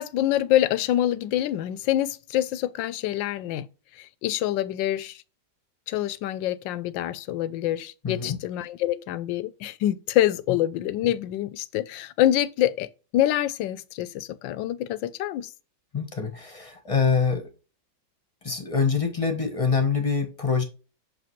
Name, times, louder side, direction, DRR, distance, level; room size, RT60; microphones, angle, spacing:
voice 1, 0.0-3.6 4.0-5.2 5.9-12.9 13.1-15.5, left 13 dB, 85° left, 1.3 m, -26 dB
voice 2, 8.0-8.4 15.9-17.4 18.4-20.6, left 5 dB, 25° left, 0.9 m, -25 dB
6.3 x 5.1 x 3.1 m
omnidirectional pair, 1.9 m